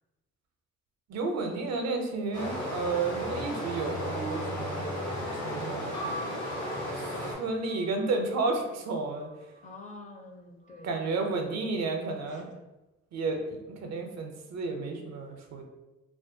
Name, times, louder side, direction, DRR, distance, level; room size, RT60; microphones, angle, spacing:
voice 1, 1.1-4.8 5.4-6.0 7.0-7.1 7.4-9.3 10.8-12.5 13.1-15.6, right 3 dB, 60° right, 3 dB, 0.5 m, -32 dB
Stream, 2.3-7.3, equal, 80° left, 1.0 m, -34 dB
sound 1, 5.9-9.8 10.6-11.3, right 1 dB, 65° left, 1.0 m, -44 dB
voice 2, 9.6-11.0 11.4-12.7, left 2 dB, 25° left, 1 dB, 0.4 m, -49 dB
2.3 x 2.2 x 2.6 m, 1.0 s
cardioid pair, 90°, 30 cm